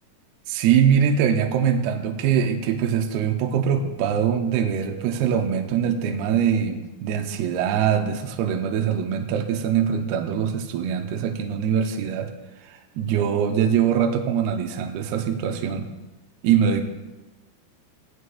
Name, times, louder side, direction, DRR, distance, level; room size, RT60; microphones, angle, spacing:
voice 1, 0.5-12.3 12.6-15.9 16.4-16.8, right 8 dB, 80° right, 4 dB, 2.6 m, -23 dB
17.5 x 11.0 x 2.3 m, 1.1 s
omnidirectional pair, 4.8 m